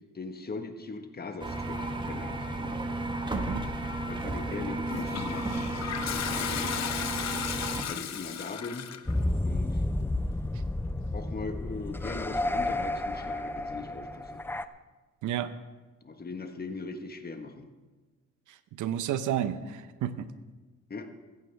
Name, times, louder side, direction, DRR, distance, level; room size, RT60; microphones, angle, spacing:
voice 1, 0.1-2.5 4.1-5.6 7.9-8.9 9.4-9.8 11.1-14.4 16.0-17.7 20.9-21.1, left 3 dB, 30° left, 6 dB, 1.5 m, -39 dB
sound 1, 1.4-7.8, right 2 dB, 15° right, 1.4 m, -33 dB
voice 2, 3.3-3.7 15.2-15.5 18.5-20.3, right 10 dB, 80° right, 12 dB, 0.8 m, -32 dB
Toilet flush, 4.9-9.2, left 9 dB, 60° left, 0.9 m, -35 dB
sound 2, 9.1-14.6, left 1 dB, 5° left, 0.5 m, -31 dB
16.0 x 14.5 x 3.5 m, 1.2 s
cardioid pair, 90°, 30 cm